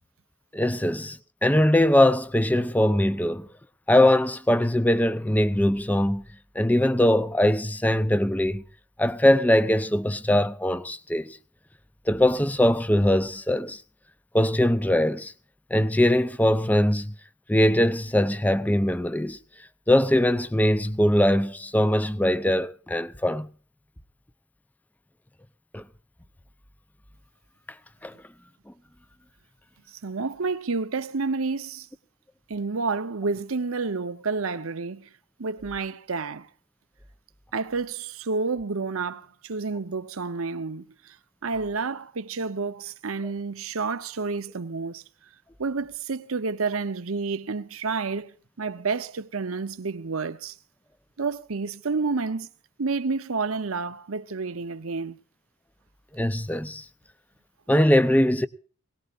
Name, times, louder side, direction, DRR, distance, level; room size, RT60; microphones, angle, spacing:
voice 1, 0.5-3.5 3.9-6.2 6.5-8.6 9.0-11.4 12.1-13.8 14.3-15.3 15.7-17.1 17.5-19.4 19.9-23.5 25.7-25.8 28.0-28.2 56.1-56.8 57.7-58.5, left 1 dB, 10° left, 0.6 m, -21 dB
voice 2, 29.9-31.9 32.5-35.1 35.4-36.5 37.5-41.2 41.4-45.0 45.6-50.6 51.2-52.5 52.8-55.2, right 4 dB, 90° right, 0.8 m, -30 dB
21.0 x 18.5 x 2.5 m
head